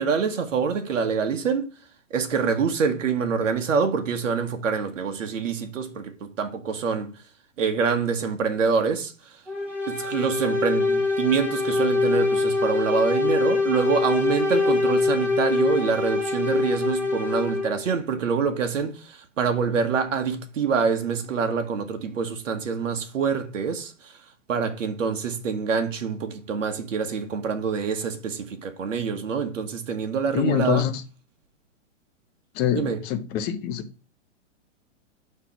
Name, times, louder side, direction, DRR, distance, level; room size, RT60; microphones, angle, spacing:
voice 1, 0.0-1.7 2.1-7.1 7.6-9.4 9.9-24.1 24.5-30.8 32.7-33.0, right 5 dB, 80° right, 1.3 m, -26 dB
sound 1, 9.5-17.9, left 3 dB, 5° right, 1.1 m, -24 dB
voice 2, 30.3-31.0 32.5-33.9, left 9 dB, 25° left, 0.7 m, -25 dB
5.9 x 3.3 x 5.8 m
hypercardioid pair, 135°, 38 cm